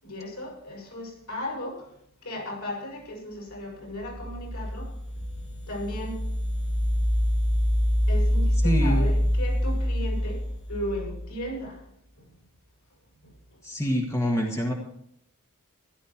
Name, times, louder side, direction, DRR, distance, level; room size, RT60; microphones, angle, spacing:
voice 1, 0.0-1.9 2.2-6.3 8.1-11.8 12.2-12.3 13.2-13.3, left 1 dB, 80° left, -1 dB, 6.7 m, -36 dB
sound 1, 4.0-11.5, equal, 65° left, 6.5 m, -26 dB
voice 2, 8.6-9.1 13.6-14.7, equal, 15° left, 0 dB, 1.7 m, -26 dB
14.5 x 12.0 x 4.5 m, 0.73 s
head